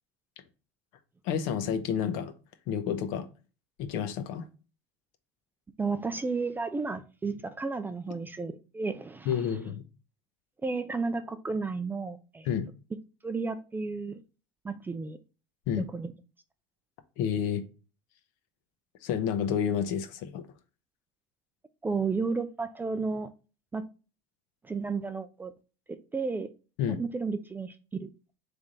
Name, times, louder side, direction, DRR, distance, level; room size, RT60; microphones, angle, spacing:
voice 1, 1.2-2.3 2.7-3.3 3.8-4.5 9.2-9.8 12.4-12.7 15.7-15.9 17.2-17.7 19.0-20.4 26.8-27.0, left 8 dB, 65° left, 0.8 m, -29 dB
voice 2, 5.8-9.3 10.6-12.5 13.2-14.2 14.6-15.2 15.9-16.1 21.8-23.3 23.7-23.8 24.7-25.5 25.9-26.5 26.9-28.1, right 4 dB, 15° right, 0.4 m, -32 dB
3.6 x 3.4 x 4.0 m
supercardioid pair, 105°, 15 cm